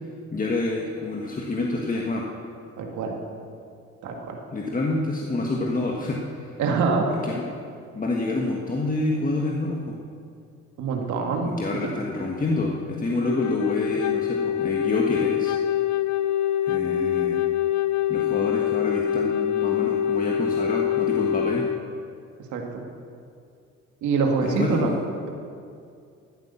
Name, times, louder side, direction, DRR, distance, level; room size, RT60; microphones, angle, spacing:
voice 1, 0.3-2.2 4.5-6.5 7.2-7.5 7.9-10.0 11.4-15.6 16.6-17.4 18.1-21.6 24.4-25.0, left 2 dB, 30° left, -1 dB, 1.6 m, -27 dB
voice 2, 2.8-3.2 4.0-4.4 6.6-7.1 10.8-11.5 22.5-22.8 24.0-24.9, right 5 dB, 80° right, 2 dB, 2.1 m, -25 dB
Wind instrument woodwind instrument, 13.2-21.8, left 10 dB, 75° left, 0.6 m, -25 dB
15.0 x 9.3 x 7.0 m, 2.4 s
cardioid pair, 85°, 29 cm